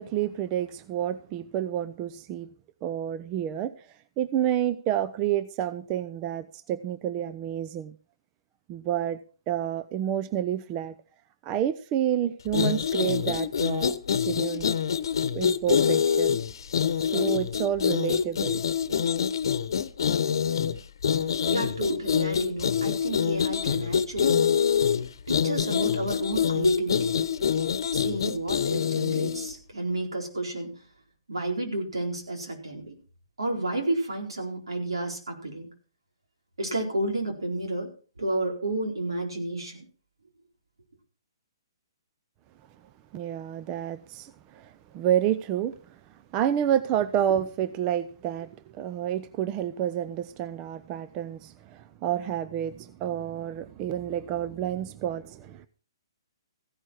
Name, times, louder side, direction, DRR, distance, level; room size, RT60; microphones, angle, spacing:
voice 1, 0.0-2.5 2.8-3.9 4.2-7.9 8.7-9.2 9.5-11.0 11.4-14.0 14.2-14.7 15.3-16.4 16.9-18.6 43.1-46.0 46.3-55.7, right 10 dB, 30° right, 0.7 m, -29 dB
sound 1, 12.5-29.5, left 7 dB, 65° left, 1.0 m, -25 dB
voice 2, 21.5-24.4 25.3-27.3 27.9-30.8 31.3-33.0 33.4-35.7 36.6-37.9 38.2-39.8, right 2 dB, 85° right, 4.4 m, -31 dB
15.0 x 11.0 x 4.5 m
hypercardioid pair, 135°, 2 cm